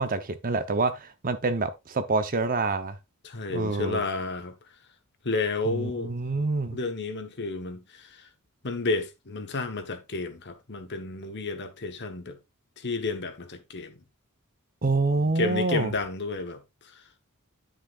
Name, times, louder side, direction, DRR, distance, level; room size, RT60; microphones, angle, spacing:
voice 1, 0.0-3.0 3.5-4.0 5.7-6.8 14.8-15.9, right 3 dB, 40° right, 0.8 m, -27 dB
voice 2, 3.2-4.5 5.2-6.1 6.7-8.3 8.6-12.4 12.8-14.0 15.2-17.0, left 3 dB, 50° left, 1.2 m, -31 dB
10.0 x 6.4 x 2.5 m
head